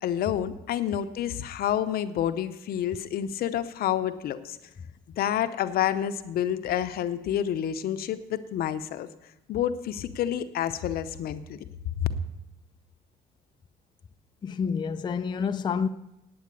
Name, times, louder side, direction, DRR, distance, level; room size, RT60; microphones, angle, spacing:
voice 1, 0.0-4.6 5.2-9.1 9.5-11.6 12.0-12.1, left 10 dB, 65° left, 0.7 m, -28 dB
voice 2, 14.4-15.9, left 6 dB, 25° left, 0.4 m, -28 dB
8.8 x 8.5 x 8.3 m
cardioid pair, 110°, 17 cm